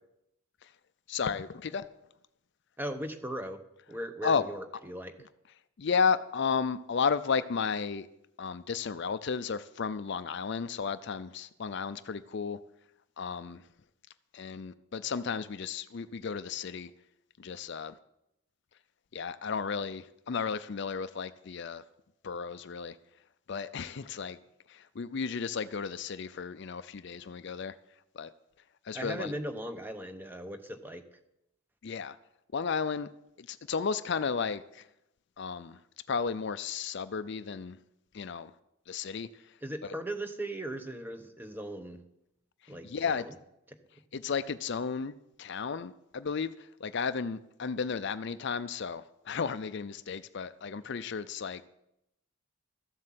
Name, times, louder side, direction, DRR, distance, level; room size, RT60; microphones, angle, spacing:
voice 1, 1.1-1.9 4.2-4.4 5.8-8.1 8.4-12.6 13.2-13.6 14.3-16.9 17.4-18.0 19.1-21.8 22.2-23.0 23.5-24.4 24.7-27.7 28.1-28.3 28.8-29.3 31.8-32.2 32.5-33.1 33.4-34.9 35.4-35.8 36.1-37.8 38.1-38.5 38.9-39.3 39.8-39.9 42.6-43.3 44.1-51.6, left 5 dB, 50° left, 14 dB, 0.4 m, -33 dB
voice 2, 2.8-3.6 3.9-5.1 28.9-31.0 39.6-42.0 42.7-43.3, right 1 dB, 10° right, 8 dB, 0.9 m, -38 dB
14.0 x 7.7 x 7.5 m, 0.83 s
head